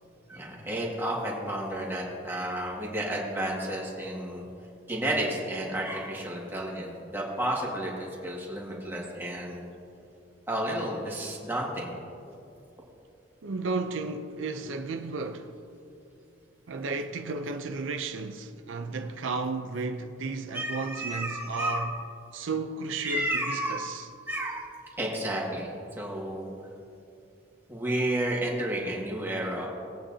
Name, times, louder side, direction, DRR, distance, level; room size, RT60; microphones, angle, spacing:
voice 1, 0.3-4.4 4.9-9.7 10.5-11.9 20.5-21.8 23.0-23.9 24.3-24.7 25.0-26.5 27.7-29.7, right 1 dB, 10° right, 2.0 m, -31 dB
voice 2, 13.4-15.5 16.7-21.9 22.3-24.1, right 3 dB, 80° right, 0.6 m, -33 dB
20.0 x 8.7 x 2.8 m
head